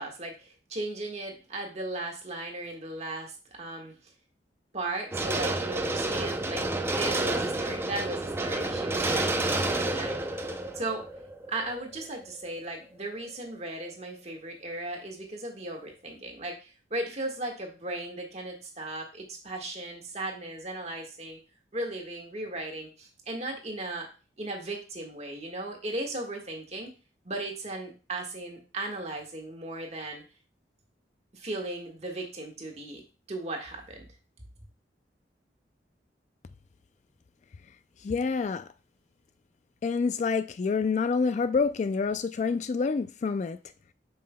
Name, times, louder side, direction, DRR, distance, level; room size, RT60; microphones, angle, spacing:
voice 1, 0.0-3.9 4.7-10.2 10.7-11.0 11.5-21.4 21.7-24.1 24.4-26.9 27.2-30.2 31.3-33.0 33.3-34.0, right 2 dB, 40° right, 1.5 m, -36 dB
sound 1, 5.1-12.2 12.6-12.7, right 2 dB, 15° right, 0.5 m, -30 dB
voice 2, 38.0-38.7 39.8-43.6, left 5 dB, 40° left, 0.3 m, -27 dB
7.5 x 5.6 x 2.2 m
head